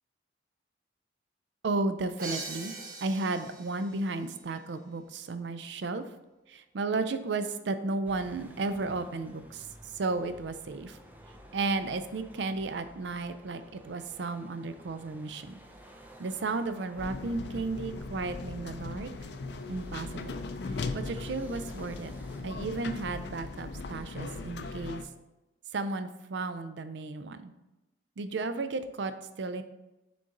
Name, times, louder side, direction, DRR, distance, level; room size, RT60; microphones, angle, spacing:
voice 1, 1.6-2.7 3.0-6.0 6.5-11.0 11.5-15.6 16.2-19.1 19.7-20.4 20.6-22.1 22.4-25.0 25.7-27.5 28.2-29.6, right 3 dB, 70° right, 11 dB, 0.4 m, -34 dB
Crash cymbal, 2.2-4.0, right 3 dB, 45° right, 1.0 m, -41 dB
sound 1, 8.1-22.4, equal, 10° right, 0.5 m, -54 dB
sound 2, 17.0-25.0, left 3 dB, 65° left, 0.4 m, -38 dB
6.7 x 3.8 x 3.8 m, 1.0 s
head